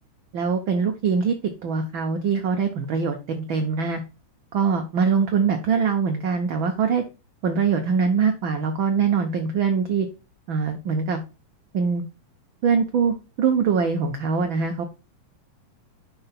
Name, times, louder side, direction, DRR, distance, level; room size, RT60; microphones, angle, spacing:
voice 1, 0.3-1.4 1.6-4.0 4.5-7.0 7.4-10.1 10.5-11.2 11.7-12.0 12.6-14.8, right 5 dB, 90° right, 5 dB, 1.0 m, -23 dB
5.7 x 4.3 x 5.7 m, 0.31 s
omnidirectional pair, 3.3 m